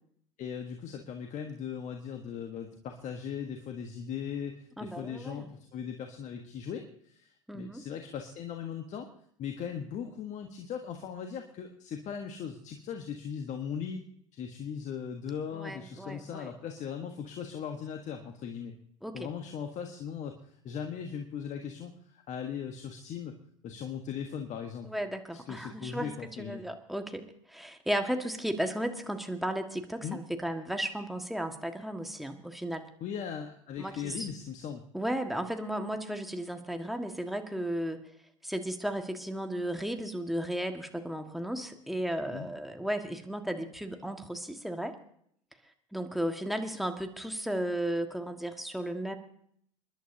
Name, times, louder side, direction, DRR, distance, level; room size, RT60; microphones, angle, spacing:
voice 1, 0.4-9.1 9.4-14.0 14.3-18.7 19.1-23.3 23.6-24.9 25.5-26.6 30.0-30.2 33.0-34.8 42.3-42.5, left 7 dB, 45° left, 5 dB, 1.4 m, -39 dB
voice 2, 4.8-5.5 7.5-7.8 15.5-16.5 19.0-19.3 24.8-26.1 26.4-32.8 33.8-34.3 34.9-38.0 38.4-44.9 45.9-49.2, right 1 dB, ahead, 5 dB, 1.7 m, -34 dB
28.5 x 11.5 x 2.8 m, 0.66 s
hypercardioid pair, 75°, 17 cm